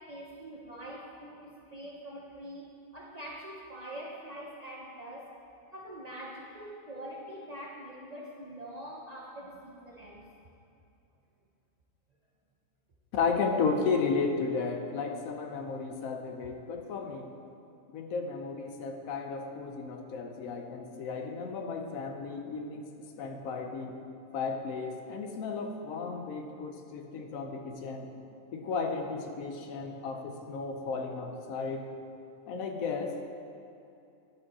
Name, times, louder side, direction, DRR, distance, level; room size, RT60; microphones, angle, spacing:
voice 1, 0.0-5.3 5.7-10.2, right 1 dB, 45° right, -3 dB, 0.5 m, -44 dB
voice 2, 13.1-17.3 17.9-22.9 23.2-24.0 24.3-28.1 28.5-31.9 32.5-33.2, left 4 dB, 85° left, 5 dB, 1.1 m, -34 dB
10.0 x 5.3 x 4.1 m, 2.7 s
omnidirectional pair, 1.4 m